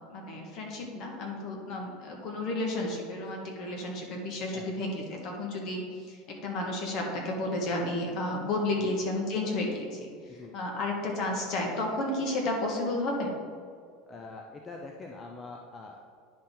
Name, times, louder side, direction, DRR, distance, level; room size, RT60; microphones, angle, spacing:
voice 1, 0.1-13.3, left 2 dB, 50° left, 0 dB, 1.7 m, -32 dB
voice 2, 4.5-4.8 8.8-9.0 10.3-10.6 14.1-16.0, left 3 dB, 25° left, 1 dB, 0.6 m, -44 dB
10.0 x 4.3 x 3.8 m, 2.2 s
supercardioid pair, 130°, 0 cm